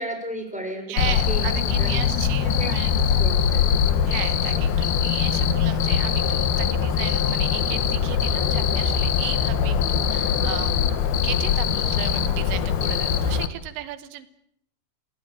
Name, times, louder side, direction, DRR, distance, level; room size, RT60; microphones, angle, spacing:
voice 1, 0.0-4.7, right 1 dB, ahead, 2 dB, 6.3 m, -35 dB
voice 2, 0.9-2.9 4.1-10.8 11.2-14.3, right 13 dB, 85° right, 12 dB, 3.5 m, -35 dB
Cricket, 1.0-13.5, left 7 dB, 65° left, 3.2 m, -22 dB
28.5 x 18.0 x 8.9 m, 0.70 s
omnidirectional pair, 5.0 m